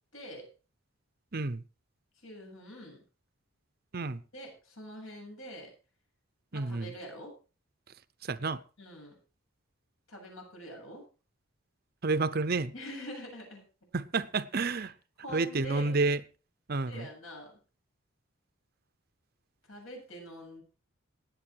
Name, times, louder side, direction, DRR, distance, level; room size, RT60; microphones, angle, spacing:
voice 1, 0.1-0.5 2.2-3.0 4.3-5.7 6.5-7.3 8.8-9.2 10.1-11.1 12.7-13.7 14.8-14.9 15.2-16.0 16.9-17.5 19.7-20.6, equal, 70° left, 8.0 m, -45 dB
voice 2, 1.3-1.6 3.9-4.2 6.5-6.9 8.3-8.6 12.0-12.7 13.9-14.9 15.3-16.2 16.7-17.1, right 3 dB, 45° right, 0.7 m, -30 dB
19.0 x 8.4 x 4.6 m
head